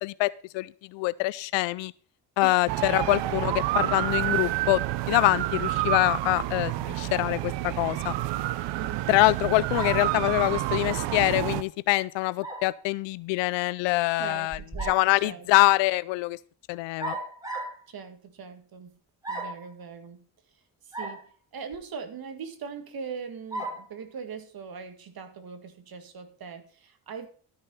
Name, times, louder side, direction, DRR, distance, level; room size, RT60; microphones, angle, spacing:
voice 1, 0.0-1.9 2.4-4.8 5.1-8.1 9.1-14.6 14.9-16.4 16.7-17.2, left 20 dB, 85° left, 19 dB, 0.5 m, -25 dB
voice 2, 2.4-3.4 8.7-9.8 14.2-15.5 17.9-18.9 19.3-20.3 20.8-21.2 21.5-27.3, right 6 dB, 55° right, 8 dB, 2.1 m, -41 dB
sound 1, 2.7-11.6, right 15 dB, 80° right, 0.7 m, -29 dB
sound 2, 9.7-10.2 12.4-12.7 14.5-15.1 17.0-17.8 19.2-19.7 20.9-21.2 21.7-21.8 23.5-23.9, right 2 dB, 10° right, 3.9 m, -34 dB
13.0 x 6.4 x 5.5 m, 0.43 s
cardioid pair, 75°, 42 cm